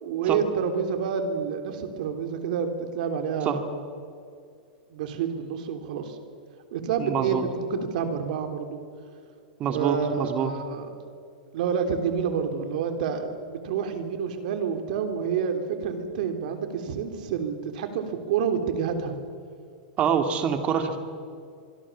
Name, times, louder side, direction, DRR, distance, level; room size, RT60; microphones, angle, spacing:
voice 1, 0.0-3.6 4.9-6.2 6.7-8.8 9.7-10.9 11.5-19.1, right 7 dB, 60° right, 7 dB, 3.2 m, -28 dB
voice 2, 7.0-7.4 9.6-10.5 20.0-21.0, right 7 dB, 25° right, 6 dB, 2.2 m, -25 dB
24.5 x 24.0 x 7.3 m, 2.4 s
supercardioid pair, 160°, 5 cm